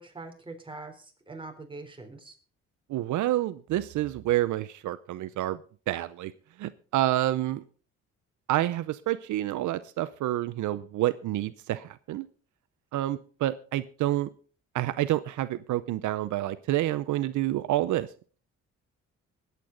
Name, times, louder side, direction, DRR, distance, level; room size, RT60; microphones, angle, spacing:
voice 1, 0.0-2.4, right 3 dB, 15° right, 4 dB, 3.6 m, -43 dB
voice 2, 2.9-5.6 5.9-6.3 6.6-7.6 8.5-12.3 12.9-14.3 14.7-18.1, right 14 dB, 75° right, 14 dB, 0.7 m, -28 dB
20.5 x 8.3 x 3.9 m, 0.40 s
cardioid pair, 90°, 30 cm